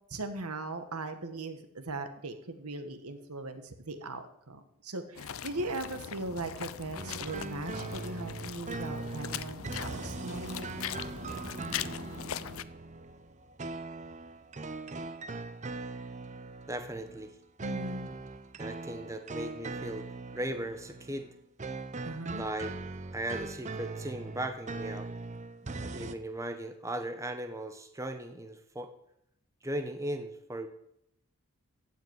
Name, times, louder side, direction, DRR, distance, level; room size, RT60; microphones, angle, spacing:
voice 1, 0.1-10.7 17.6-18.1 22.0-22.4, right 2 dB, 85° right, 8 dB, 1.5 m, -39 dB
sound 1, 5.2-12.6, left 9 dB, 65° left, 0.5 m, -40 dB
sound 2, 7.0-26.1, right 3 dB, 30° right, 0.7 m, -40 dB
voice 2, 16.7-17.3 18.6-21.3 22.3-22.8 23.1-25.1 25.8-28.9 29.6-30.7, right 1 dB, 15° right, 7 dB, 1.0 m, -37 dB
15.0 x 5.9 x 9.2 m, 0.75 s
head